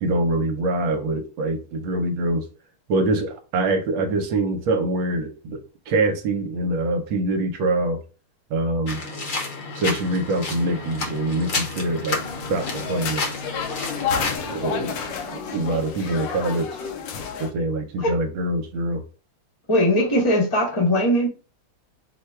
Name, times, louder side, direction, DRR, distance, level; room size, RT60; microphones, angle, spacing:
voice 1, 0.0-2.4 2.9-5.6 5.9-8.0 8.5-9.0 9.8-12.2 12.5-13.3 14.5-15.0 15.5-16.9 17.4-19.0, right 2 dB, 70° right, 1.3 m, -24 dB
sound 1, 8.9-14.4, left 3 dB, 50° left, 1.0 m, -31 dB
sound 2, 10.6-15.6, right 4 dB, 30° right, 1.1 m, -43 dB
sound 3, 12.1-17.5, left 6 dB, 70° left, 1.1 m, -30 dB
voice 2, 19.7-21.3, equal, 25° left, 0.6 m, -20 dB
4.7 x 2.2 x 4.5 m
omnidirectional pair, 2.4 m